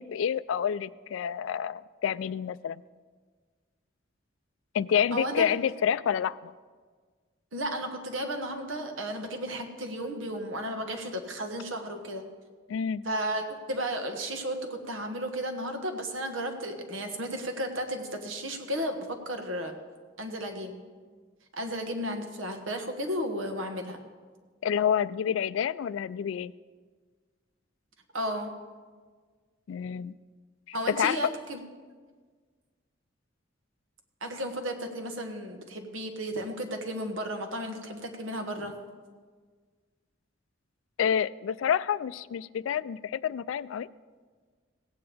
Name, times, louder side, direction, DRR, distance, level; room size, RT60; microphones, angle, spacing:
voice 1, 0.0-2.8 4.7-6.5 12.7-13.0 24.6-26.5 29.7-30.1 31.0-31.2 41.0-43.9, left 8 dB, 85° left, 18 dB, 0.3 m, -28 dB
voice 2, 5.1-5.5 7.5-12.3 13.0-19.7 20.2-20.8 21.5-24.0 28.1-28.5 30.7-31.6 34.2-38.8, equal, 85° right, 5 dB, 1.3 m, -34 dB
17.0 x 8.7 x 3.4 m, 1.5 s
head